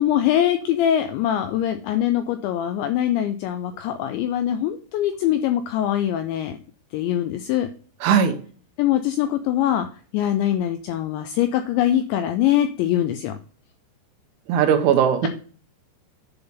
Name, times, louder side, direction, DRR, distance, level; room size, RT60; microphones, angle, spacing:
voice 1, 0.0-6.6 6.9-7.7 8.8-9.9 10.1-13.4, left 11 dB, 90° left, 7 dB, 2.6 m, -23 dB
voice 2, 8.0-8.4 14.5-15.3, right 8 dB, 80° right, 7 dB, 3.2 m, -18 dB
10.5 x 3.9 x 5.3 m, 0.42 s
omnidirectional pair, 5.9 m